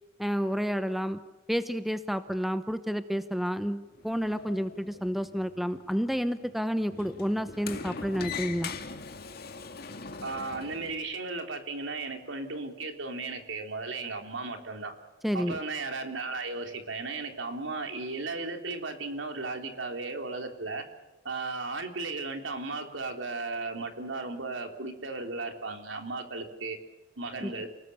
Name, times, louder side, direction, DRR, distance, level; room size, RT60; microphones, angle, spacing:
voice 1, 0.2-1.2 1.5-8.8 15.2-15.6 27.4-27.5, equal, ahead, 11 dB, 0.9 m, -30 dB
Sliding door, 3.9-10.9, left 5 dB, 55° left, 2.2 m, -42 dB
voice 2, 10.2-14.9 15.3-20.9 21.2-26.8 27.2-27.7, right 3 dB, 80° right, 5 dB, 3.6 m, -35 dB
29.0 x 19.5 x 7.0 m, 1.1 s
head